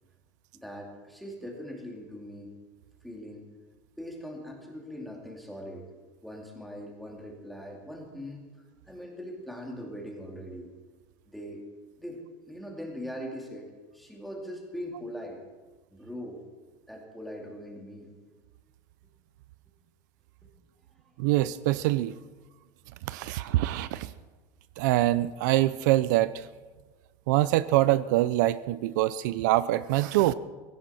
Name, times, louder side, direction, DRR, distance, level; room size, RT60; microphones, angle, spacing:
voice 1, 0.5-2.5 3.0-3.4 4.0-5.9 6.2-8.4 8.8-10.7 11.3-11.6 12.0-15.4 15.9-16.4 16.9-18.1 20.4-20.5, equal, ahead, 0 dB, 2.4 m, -41 dB
voice 2, 21.2-22.2 23.0-24.1 24.8-26.5 27.3-30.3, right 16 dB, 80° right, 16 dB, 0.6 m, -24 dB
18.0 x 16.5 x 4.2 m, 1.3 s
cardioid pair, 170°, 10 cm